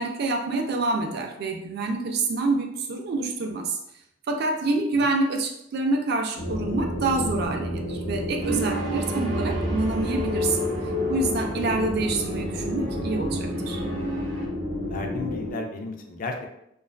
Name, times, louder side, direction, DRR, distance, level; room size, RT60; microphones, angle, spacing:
voice 1, 0.0-3.8 4.3-10.7 11.1-13.8, right 3 dB, 55° right, 4 dB, 0.3 m, -27 dB
sound 1, 6.4-15.5, equal, 70° left, 0.8 m, -31 dB
sound 2, 8.4-14.5, left 1 dB, 70° right, 0.8 m, -31 dB
voice 2, 14.8-16.5, left 3 dB, 45° left, 3 dB, 0.4 m, -34 dB
2.4 x 2.3 x 2.2 m, 0.77 s
head